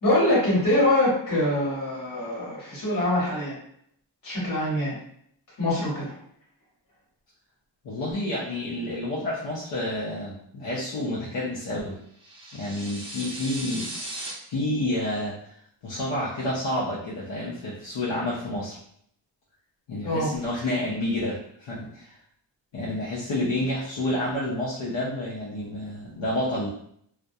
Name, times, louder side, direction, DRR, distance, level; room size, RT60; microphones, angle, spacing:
voice 1, 0.0-3.6 4.2-5.0 5.6-6.1 20.0-20.3, left 1 dB, 45° left, -7 dB, 1.2 m, -24 dB
voice 2, 7.8-12.0 12.5-13.9 14.5-15.3 15.8-18.8 19.9-22.2 22.7-26.7, left 1 dB, 75° left, -6 dB, 0.6 m, -29 dB
sound 1, 12.2-14.3, right 1 dB, 15° right, 0.6 m, -37 dB
2.2 x 2.1 x 2.6 m, 0.69 s
wide cardioid pair, 170°, 44 cm